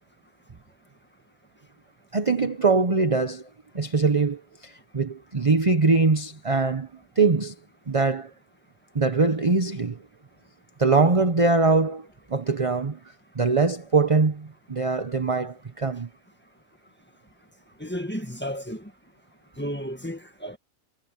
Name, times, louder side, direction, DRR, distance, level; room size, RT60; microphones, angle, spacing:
voice 1, 2.1-3.5 3.7-6.9 7.2-7.5 7.9-8.3 8.9-10.0 10.8-13.0 13.3-16.1, right 4 dB, 25° right, 0.9 m, -22 dB
voice 2, 17.8-18.9 19.6-20.6, equal, 10° left, 1.7 m, -33 dB
omnidirectional pair, 1.4 m